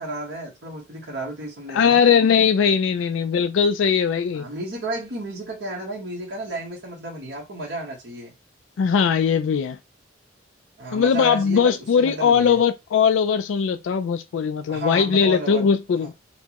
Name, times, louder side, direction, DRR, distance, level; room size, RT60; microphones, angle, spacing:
voice 1, 0.0-2.0 4.3-8.3 10.8-12.6 14.7-15.6 16.0-16.1, right 2 dB, 70° right, 1.0 m, -33 dB
voice 2, 1.7-4.4 8.8-9.8 10.9-16.1, left 6 dB, 85° left, 0.3 m, -20 dB
4.3 x 2.1 x 2.8 m
head